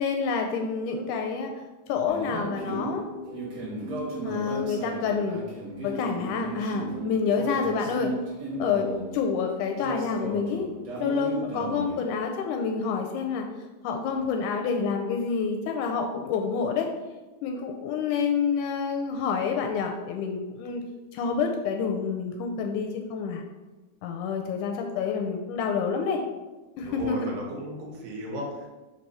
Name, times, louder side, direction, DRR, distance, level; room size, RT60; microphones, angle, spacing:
voice 1, 0.0-1.5 1.9-3.0 4.2-5.4 5.8-8.1 8.6-10.7 11.0-13.5 13.8-16.9 17.4-20.8 21.1-23.4 24.0-26.2 26.8-27.3, left 5 dB, 80° left, 3 dB, 1.8 m, -28 dB
sound 1, 2.1-12.0, right 2 dB, 55° right, 2.2 m, -35 dB
voice 2, 26.9-28.7, right 1 dB, 80° right, -1 dB, 2.7 m, -35 dB
6.1 x 2.9 x 5.4 m, 1.1 s
omnidirectional pair, 3.8 m